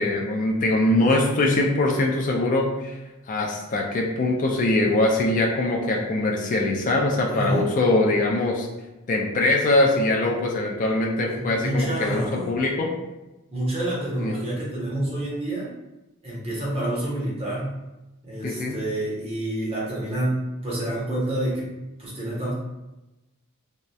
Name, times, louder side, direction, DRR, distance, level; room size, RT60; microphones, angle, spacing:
voice 1, 0.0-3.0 3.3-8.7 9.1-12.9 14.2-14.4 18.4-18.8, left 2 dB, 35° left, 0 dB, 0.3 m, -22 dB
voice 2, 7.3-7.7 11.3-12.5 13.5-15.7 16.2-17.8 18.2-21.7 22.0-22.5, right 1 dB, 25° right, -6 dB, 0.8 m, -28 dB
2.6 x 2.1 x 2.2 m, 1.0 s
head